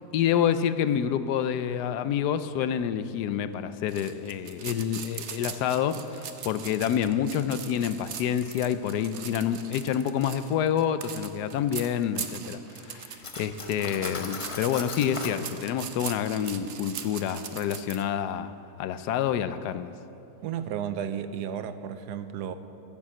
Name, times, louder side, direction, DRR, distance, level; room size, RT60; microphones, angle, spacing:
voice 1, 0.1-18.5 18.8-19.9, left 9 dB, 80° left, 12 dB, 1.1 m, -28 dB
sound 1, 3.9-18.0, right 8 dB, 55° right, 0.9 m, -40 dB
Cutlery silverware, 13.2-15.4, left 3 dB, 35° left, 0.5 m, -38 dB
voice 2, 20.4-22.5, right 9 dB, 80° right, 11 dB, 1.2 m, -33 dB
15.0 x 7.3 x 7.6 m, 2.8 s
omnidirectional pair, 1.8 m